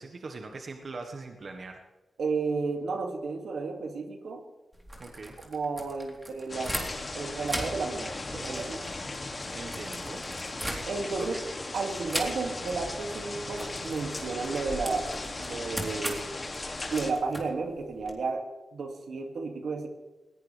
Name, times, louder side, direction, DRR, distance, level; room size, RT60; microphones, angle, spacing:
voice 1, 0.0-1.8 5.0-5.4 9.5-10.2 11.2-11.4, right 3 dB, 55° right, 4 dB, 1.5 m, -41 dB
voice 2, 2.2-4.4 5.4-6.8 7.2-8.9 10.9-11.4 11.7-16.2 16.9-19.9, right 4 dB, 75° right, 4 dB, 2.5 m, -32 dB
sound 1, 4.7-7.2 7.4-11.3 12.1-12.8 13.0-13.2 13.5-18.1, equal, 10° right, 3.9 m, -39 dB
sound 2, 6.5-17.1, left 2 dB, 35° left, 2.6 m, -37 dB
21.0 x 17.0 x 3.5 m, 1.1 s
cardioid pair, 85°, 0 cm